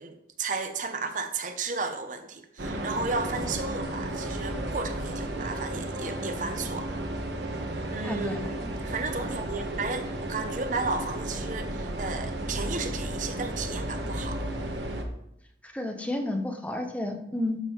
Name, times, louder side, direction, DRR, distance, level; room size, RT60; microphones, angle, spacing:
voice 1, 0.0-6.9 7.9-14.4, right 3 dB, 45° right, 7 dB, 0.8 m, -34 dB
sound 1, 2.6-15.0, right 1 dB, 80° right, 1.3 m, -33 dB
voice 2, 8.0-8.5 15.6-17.6, left 1 dB, 10° left, 4 dB, 0.9 m, -31 dB
12.0 x 6.2 x 3.6 m, 0.78 s
head